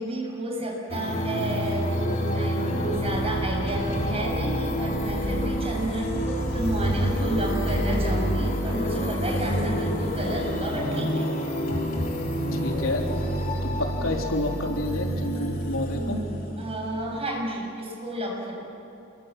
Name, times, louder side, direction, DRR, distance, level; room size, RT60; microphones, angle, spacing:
voice 1, 0.0-11.3 16.6-18.5, right 1 dB, 30° right, 0 dB, 7.2 m, -31 dB
sound 1, 0.9-17.2, equal, 45° left, 3.8 m, -28 dB
voice 2, 12.6-13.0 13.6-16.2, left 1 dB, 85° left, 1 dB, 3.7 m, -29 dB
28.5 x 23.0 x 7.6 m, 3.0 s
head